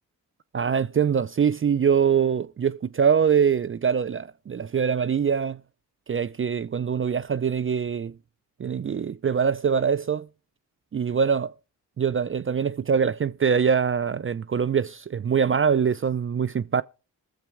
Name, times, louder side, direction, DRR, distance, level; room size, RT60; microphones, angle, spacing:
voice 1, 0.5-5.6 6.1-8.2 8.6-10.3 10.9-11.5 12.0-16.8, right 7 dB, 30° right, 0.5 m, -23 dB
21.0 x 7.3 x 3.5 m
supercardioid pair, 40°, 42 cm